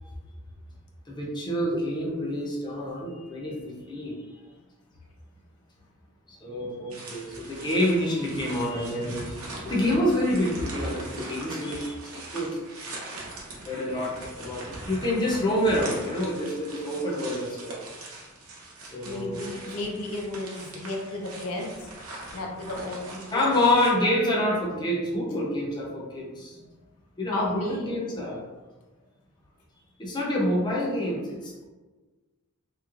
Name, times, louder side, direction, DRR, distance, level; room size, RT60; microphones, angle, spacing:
voice 1, 1.1-3.6 3.9-4.1 6.4-9.4 9.6-12.6 13.7-17.7 18.9-19.6 23.3-26.5 27.2-28.4 30.0-31.6, left 1 dB, 20° left, -4 dB, 0.6 m, -27 dB
sound 1, 6.9-23.9, right 2 dB, 85° right, 0.8 m, -41 dB
voice 2, 19.0-21.9 22.3-23.5 27.3-28.0, left 2 dB, 85° left, -1 dB, 0.6 m, -34 dB
3.0 x 3.0 x 2.4 m, 1.2 s
head